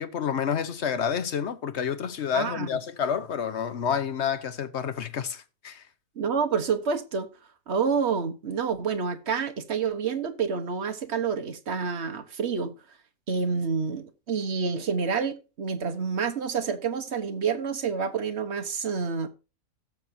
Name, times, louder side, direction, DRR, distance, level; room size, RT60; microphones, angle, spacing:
voice 1, 0.0-5.9, left 7 dB, 50° left, 1.1 m, -29 dB
voice 2, 2.3-2.7 6.2-7.3 7.7-12.7 13.3-19.3, right 5 dB, 45° right, 1.4 m, -28 dB
16.5 x 6.5 x 2.7 m
omnidirectional pair, 1.7 m